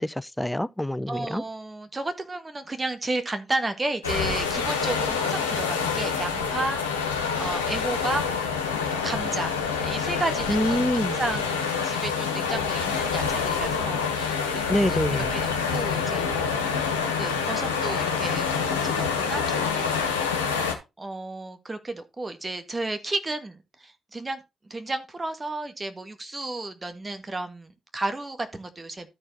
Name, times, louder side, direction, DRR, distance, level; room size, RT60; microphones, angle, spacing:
voice 1, 0.0-1.4 10.5-11.2 14.7-15.3, equal, 5° left, 0.6 m, -26 dB
voice 2, 1.1-8.2 9.0-9.6 9.8-15.0 15.3-20.1 21.0-29.1, right 2 dB, 25° right, 1.8 m, -33 dB
sound 1, 4.0-20.7, left 6 dB, 90° left, 1.2 m, -27 dB
12.5 x 4.5 x 4.1 m
hypercardioid pair, 40°, 0 cm